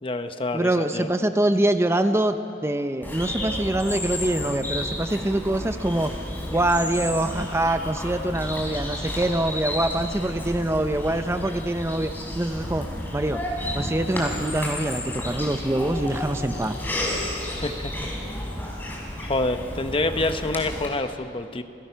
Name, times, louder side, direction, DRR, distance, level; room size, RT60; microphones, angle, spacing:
voice 1, 0.0-1.1 17.6-18.1 19.2-21.6, left 2 dB, 30° left, 8 dB, 0.9 m, -27 dB
voice 2, 0.5-2.4 2.6-6.1 6.5-12.1 12.4-12.9 13.1-13.4 13.7-16.7, right 1 dB, 15° right, 8 dB, 0.6 m, -24 dB
Bird vocalization bird call bird song, 3.0-20.9, left 1 dB, 10° left, 4.2 m, -32 dB
28.0 x 18.0 x 5.8 m, 2.6 s
head